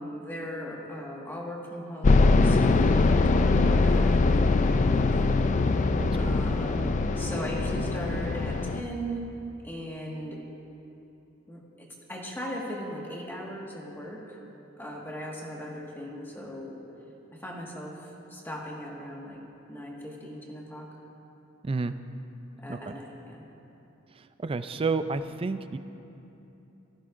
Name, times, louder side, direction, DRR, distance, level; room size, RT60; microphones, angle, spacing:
voice 1, 0.0-9.3 9.6-10.4 11.5-14.4 14.8-16.8 17.3-19.4 19.7-20.9 22.6-23.4, equal, 10° left, -3 dB, 1.6 m, -38 dB
sound 1, 2.0-8.8, left 3 dB, 35° left, 0.4 m, -22 dB
voice 2, 6.0-6.4 21.6-21.9 22.7-22.9 24.4-25.8, right 4 dB, 25° right, 11 dB, 0.4 m, -30 dB
18.0 x 14.5 x 2.6 m, 2.9 s
head